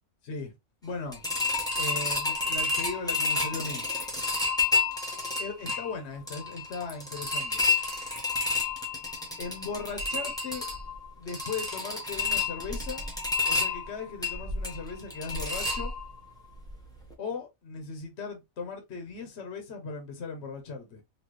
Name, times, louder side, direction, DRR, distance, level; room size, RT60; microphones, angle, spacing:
voice 1, 0.2-0.5 0.8-1.2 1.8-3.9 5.4-7.7 9.4-10.7 11.2-13.1 13.4-15.9 17.2-21.0, left 4 dB, 55° left, 1.2 m, -38 dB
sound 1, 1.1-16.3 16.7-16.8 17.1-17.2, left 4 dB, 5° left, 1.1 m, -30 dB
4.3 x 2.7 x 3.1 m
omnidirectional pair, 1.4 m